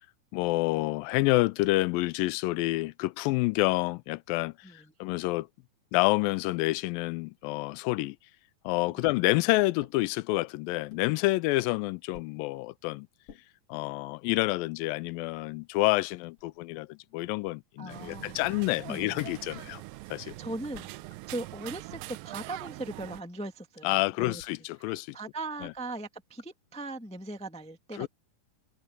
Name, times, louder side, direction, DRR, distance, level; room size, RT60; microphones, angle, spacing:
voice 1, 0.3-5.5 5.9-8.2 8.7-13.1 13.7-19.8 20.1-20.3 23.8-25.2 25.6-25.7 28.0-28.1, left 21 dB, 85° left, 2.3 m, -28 dB
sound 1, 9.8-10.0 10.9-11.1 12.1-12.4 13.3-13.4 14.2-14.5 15.3-15.4 15.6-16.6 18.4-18.8 19.5-19.9 20.7-21.1 21.9-22.2 23.0-23.3 24.4-24.6 25.6-26.0, left 6 dB, 50° left, 2.7 m, -54 dB
voice 2, 17.8-18.4 18.9-19.1 20.2-20.9 21.3-24.4 24.8-28.1, right 2 dB, 5° left, 0.5 m, -39 dB
sound 2, 17.9-23.2, right 19 dB, 90° right, 2.3 m, -43 dB
sound 3, 20.6-20.8 21.1-22.9 24.2-26.5 26.8-26.9, left 1 dB, 10° right, 3.6 m, -62 dB
omnidirectional pair, 4.0 m